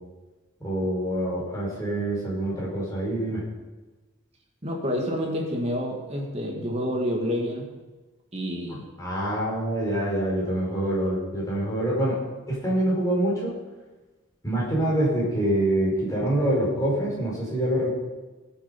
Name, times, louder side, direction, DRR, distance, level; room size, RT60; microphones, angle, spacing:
voice 1, 0.6-3.4 9.0-12.2 12.5-13.5 14.4-17.9, right 1 dB, 15° left, -5 dB, 5.1 m, -25 dB
voice 2, 4.6-7.7 8.3-8.9, equal, 30° right, 0 dB, 2.1 m, -28 dB
18.5 x 7.9 x 5.5 m, 1.2 s
head